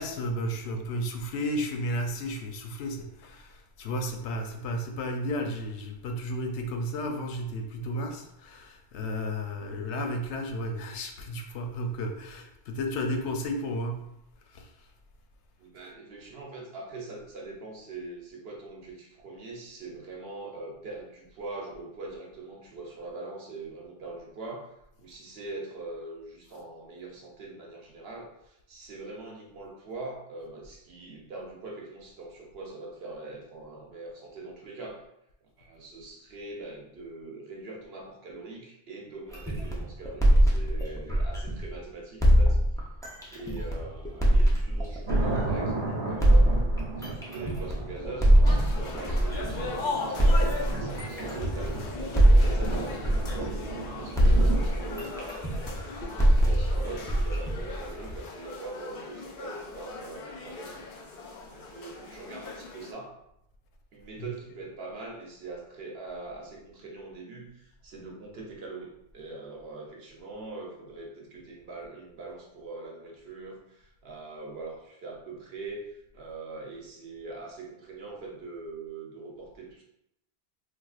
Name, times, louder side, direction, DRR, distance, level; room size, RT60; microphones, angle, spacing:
voice 1, 0.0-14.1 14.4-14.9 64.2-64.6, equal, 85° left, 4 dB, 0.9 m, -33 dB
voice 2, 15.6-24.7 25.0-35.0 35.6-42.6 43.3-48.4 48.7-51.9 52.3-55.8 56.2-60.8 61.5-63.1 63.9-79.8, right 3 dB, 65° right, -1 dB, 0.9 m, -42 dB
sound 1, 39.3-41.8 42.2-45.7 46.2-49.7 50.2-53.9 54.2-58.3, right 1 dB, 5° left, 0.4 m, -23 dB
sound 2, 45.1-55.1, right 3 dB, 90° right, 1.1 m, -36 dB
sound 3, 48.4-62.9, left 4 dB, 60° left, 0.6 m, -39 dB
4.1 x 2.4 x 2.4 m, 0.81 s
omnidirectional pair, 1.1 m